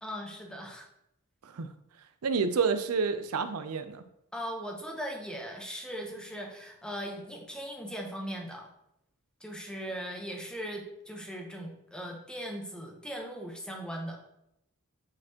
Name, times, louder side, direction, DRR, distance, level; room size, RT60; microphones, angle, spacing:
voice 1, 0.0-0.9 4.3-8.7 9.4-14.2, equal, 5° left, 1 dB, 0.9 m, -39 dB
voice 2, 2.2-4.0, right 5 dB, 80° right, 10 dB, 0.5 m, -29 dB
8.8 x 4.3 x 2.9 m, 0.80 s
head